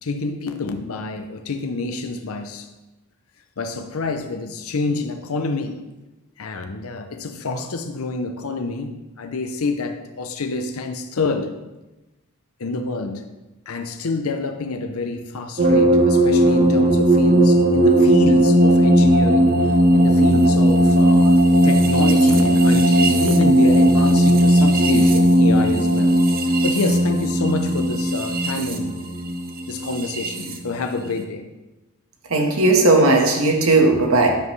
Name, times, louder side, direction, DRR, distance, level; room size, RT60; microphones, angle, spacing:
voice 1, 0.0-2.7 3.6-5.8 6.4-11.6 12.6-13.2 13.7-21.4 21.6-26.2 26.6-29.0 29.7-31.4, left 3 dB, 70° left, 7 dB, 0.6 m, -27 dB
sound 1, 15.6-30.6, right 1 dB, 40° right, 0.8 m, -16 dB
voice 2, 32.3-34.3, right 2 dB, 70° right, 2 dB, 1.4 m, -16 dB
10.5 x 7.3 x 3.2 m, 1.1 s
head